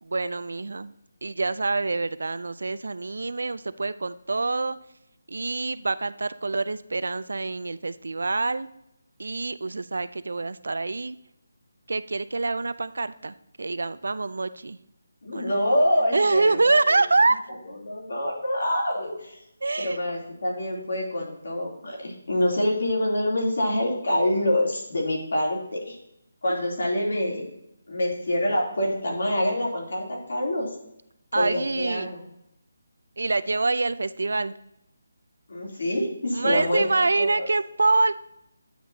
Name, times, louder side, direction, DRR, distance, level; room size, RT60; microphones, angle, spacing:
voice 1, 0.0-0.9 1.2-4.8 5.3-8.7 9.2-11.2 11.9-14.8 15.3-15.6 16.1-17.4 19.6-20.0 26.5-26.6 31.3-32.1 33.2-34.5 36.3-38.1, right 3 dB, 80° right, 14 dB, 0.4 m, -25 dB
voice 2, 15.2-16.6 17.8-19.4 19.8-26.0 26.4-27.5 27.9-30.7 31.3-32.2 35.5-36.8 37.1-37.5, left 1 dB, 65° left, -2 dB, 2.9 m, -26 dB
9.3 x 5.9 x 2.8 m, 0.80 s
hypercardioid pair, 170°, 0 cm